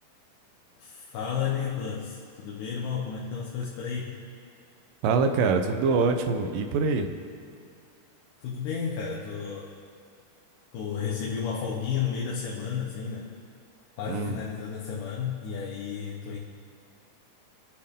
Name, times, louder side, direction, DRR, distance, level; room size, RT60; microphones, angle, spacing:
voice 1, 0.8-4.2 8.4-9.7 10.7-13.3 14.0-16.4, left 7 dB, 75° left, -3 dB, 2.7 m, -32 dB
voice 2, 5.0-7.2 14.1-14.4, right 4 dB, 85° right, 6 dB, 2.6 m, -24 dB
27.5 x 9.9 x 3.7 m, 2.2 s
omnidirectional pair, 3.8 m